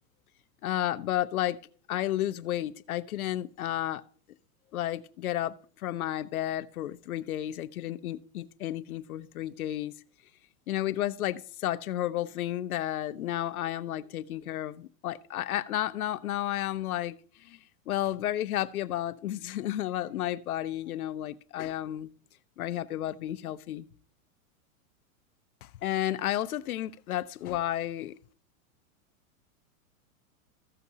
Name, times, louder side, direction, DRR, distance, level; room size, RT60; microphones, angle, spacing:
voice 1, 0.6-1.6 1.9-4.0 4.7-9.9 10.7-17.1 17.4-17.6 17.9-22.1 22.6-23.9 25.6-28.2, left 13 dB, 85° left, 0.7 m, -32 dB
15.5 x 5.9 x 2.8 m
hypercardioid pair, 115°, 42 cm